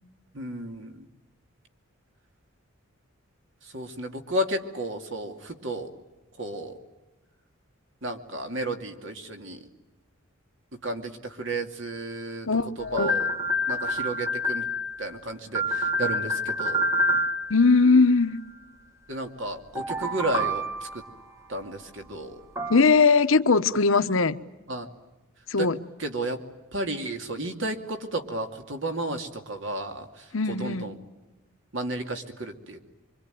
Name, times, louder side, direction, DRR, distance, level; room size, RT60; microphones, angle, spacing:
voice 1, 0.3-1.1 3.7-5.9 6.4-6.7 8.0-9.6 10.8-12.5 12.8-13.3 13.7-14.7 15.0-16.8 19.1-20.9 21.5-22.4 24.7-24.9 25.6-25.7 26.0-26.4 26.7-30.9 31.7-32.8, right 1 dB, 60° right, 2.6 m, -32 dB
voice 2, 12.5-13.1 17.5-18.4 22.7-24.4 25.5-25.8 30.3-30.9, left 4 dB, 70° left, 1.1 m, -20 dB
sound 1, 13.0-15.2 15.5-17.9 19.8-21.1 22.6-22.8, equal, 15° right, 1.2 m, -27 dB
25.5 x 24.5 x 9.3 m
head